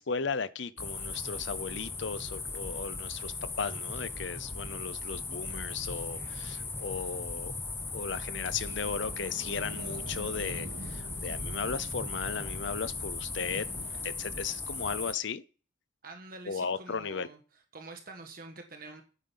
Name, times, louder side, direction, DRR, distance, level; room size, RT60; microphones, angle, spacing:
voice 1, 0.0-7.5 7.9-13.7 14.0-15.4 16.5-17.3, left 5 dB, 65° left, 0.6 m, -36 dB
sound 1, 0.8-15.1, left 3 dB, 10° left, 0.8 m, -38 dB
sound 2, 9.0-14.0, right 2 dB, 85° right, 1.2 m, -46 dB
voice 2, 16.0-17.4 17.7-19.0, right 3 dB, 45° right, 1.4 m, -46 dB
9.1 x 8.9 x 5.7 m
head